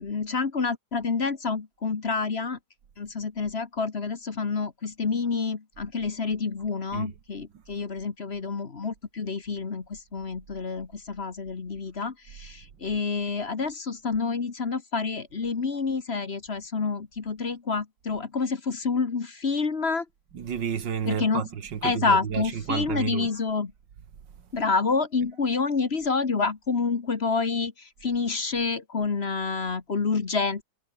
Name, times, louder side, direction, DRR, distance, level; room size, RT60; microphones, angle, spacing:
voice 1, 0.0-2.6 3.0-20.0 21.0-21.4 21.8-23.7 24.5-30.6, left 4 dB, 40° left, 1.6 m, -28 dB
voice 2, 20.3-23.5, right 7 dB, 90° right, 2.3 m, -31 dB
omnidirectional pair, 1.9 m